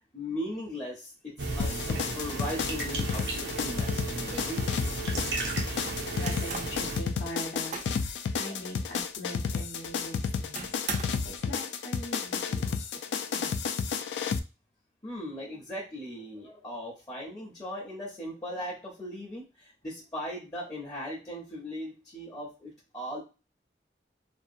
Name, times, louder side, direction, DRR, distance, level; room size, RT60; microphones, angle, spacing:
voice 1, 0.1-4.7 8.5-8.6 15.0-23.2, left 1 dB, 20° left, -4 dB, 0.6 m, -38 dB
sound 1, 1.4-7.0, right 2 dB, 90° right, 0.6 m, -34 dB
sound 2, 1.6-14.4, left 6 dB, 90° left, 0.3 m, -31 dB
sound 3, 4.2-4.9 5.9-6.8 7.3-8.0 8.5-8.6 9.0-9.1 10.6-11.4, right 4 dB, 40° right, 0.4 m, -40 dB
voice 2, 5.9-13.0 13.3-13.9, equal, 75° left, -1 dB, 0.7 m, -43 dB
2.6 x 2.3 x 2.5 m, 0.30 s
head